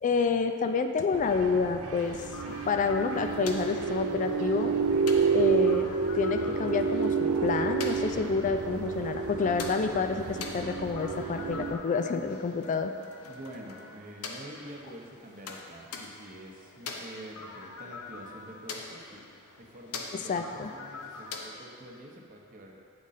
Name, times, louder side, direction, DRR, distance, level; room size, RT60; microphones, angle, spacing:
voice 1, 0.0-2.2 2.7-4.7 5.3-5.9 6.1-12.9 20.1-20.7, left 4 dB, 35° left, 7 dB, 0.3 m, -28 dB
sound 1, 1.1-11.7, right 5 dB, 75° right, 0.5 m, -29 dB
sound 2, 2.0-21.5, left 4 dB, 85° left, 0.6 m, -44 dB
voice 2, 13.2-19.2 19.6-22.8, right 1 dB, 40° right, 0 dB, 0.8 m, -47 dB
8.7 x 3.7 x 4.1 m, 2.4 s
head